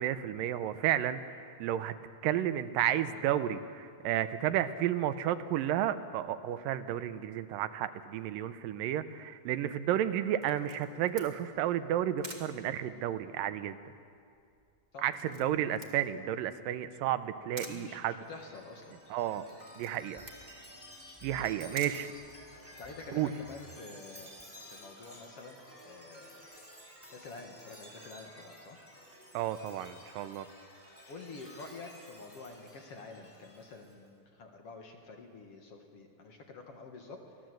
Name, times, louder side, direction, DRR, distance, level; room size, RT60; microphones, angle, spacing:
voice 1, 0.0-1.9 2.2-13.8 15.0-18.2 19.1-19.4 19.8-20.2 21.2-22.1 23.1-23.3 29.3-30.5, right 11 dB, 85° right, 12 dB, 2.4 m, -32 dB
Camera, 10.4-22.9, right 2 dB, 20° right, 1.1 m, -51 dB
voice 2, 14.9-15.6 17.5-19.0 21.5-21.6 22.8-24.3 24.7-26.5 27.1-28.8 31.1-37.2, left 3 dB, 50° left, 3 dB, 2.2 m, -48 dB
Chime, 18.1-34.0, equal, 5° left, 3.0 m, -53 dB
23.5 x 17.0 x 7.8 m, 2.4 s
omnidirectional pair, 4.0 m